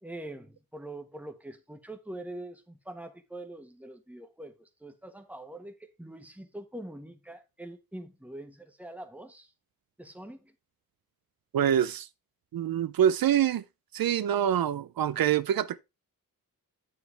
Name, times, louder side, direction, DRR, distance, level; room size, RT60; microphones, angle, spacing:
voice 1, 0.0-9.5 10.0-10.5, right 1 dB, 5° right, 1.2 m, -44 dB
voice 2, 11.5-12.1 12.5-13.6 13.9-15.8, right 10 dB, 80° right, 0.5 m, -25 dB
8.2 x 7.4 x 3.3 m
wide cardioid pair, 100°, 35 cm